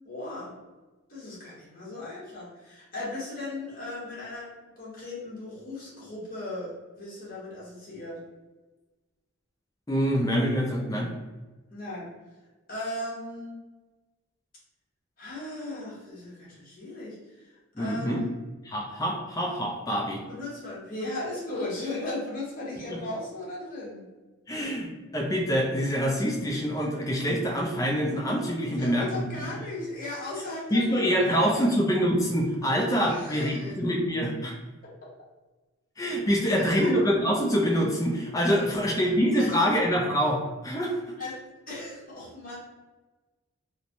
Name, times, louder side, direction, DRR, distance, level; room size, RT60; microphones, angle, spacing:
voice 1, 0.0-0.5 1.1-4.5 4.8-8.2 11.7-12.1 12.7-13.6 15.2-17.5 17.8-18.4 20.3-24.1 28.6-31.8 33.1-33.7 36.5-36.9 38.7-39.0 39.4-39.6 41.2-41.4 41.7-42.5, left 2 dB, 40° left, -7 dB, 1.0 m, -37 dB
voice 2, 9.9-11.1 17.8-18.2 18.6-20.2 22.9-23.0 24.5-29.5 30.7-34.5 36.0-41.0, equal, 15° left, -1 dB, 0.4 m, -25 dB
3.1 x 2.1 x 2.6 m, 1.2 s
head